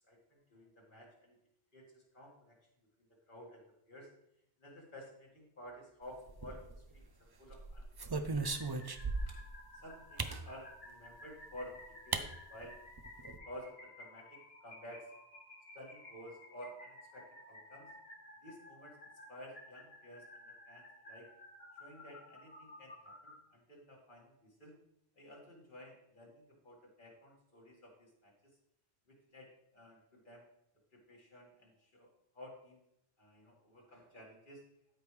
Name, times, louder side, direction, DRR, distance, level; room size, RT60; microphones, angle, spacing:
voice 1, 0.1-1.4 1.7-2.6 3.1-4.1 4.6-6.6 6.9-8.9 9.3-9.4 9.8-11.8 12.0-12.8 13.2-15.1 15.7-17.9 18.4-19.0 19.3-21.3 21.8-24.8 25.2-28.5 29.1-30.5 30.9-32.8 33.2-34.6, equal, 50° left, -1 dB, 2.2 m, -53 dB
sound 1, 6.3-7.0 7.5-9.5 10.2-10.4 11.5-11.6 12.1-12.3 12.6-12.7 13.0-13.4, right 3 dB, 35° right, 0.4 m, -37 dB
sound 2, 8.4-23.4, left 1 dB, 70° left, 2.3 m, -55 dB
13.0 x 5.3 x 3.2 m, 0.79 s
omnidirectional pair, 1.1 m